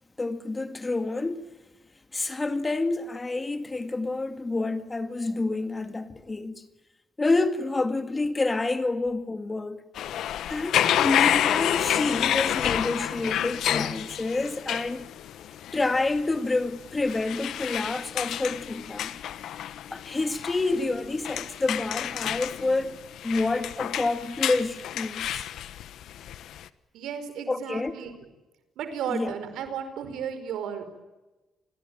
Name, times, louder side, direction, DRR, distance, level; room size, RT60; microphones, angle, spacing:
voice 1, 0.2-1.5 2.1-6.7 7.2-9.8 10.5-15.1 15.7-19.1 19.9-23.0 23.2-25.5 27.5-27.9 29.1-29.3, left 3 dB, 25° left, 2.0 m, -28 dB
sound 1, 10.0-26.7, left 11 dB, 75° left, 1.1 m, -29 dB
voice 2, 26.9-28.1 28.8-30.8, right 8 dB, 85° right, 5.0 m, -34 dB
29.0 x 21.5 x 9.0 m
cardioid pair, 90°, 0 cm